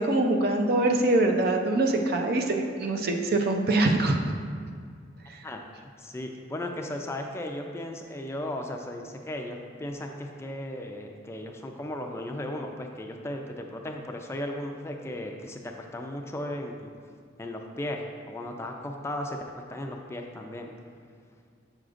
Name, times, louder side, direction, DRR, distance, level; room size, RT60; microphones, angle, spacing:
voice 1, 0.0-4.2, right 2 dB, 55° right, 3 dB, 0.5 m, -24 dB
voice 2, 6.0-16.9 17.4-20.7, left 1 dB, 15° left, 2 dB, 0.4 m, -36 dB
7.6 x 6.2 x 2.5 m, 2.1 s
head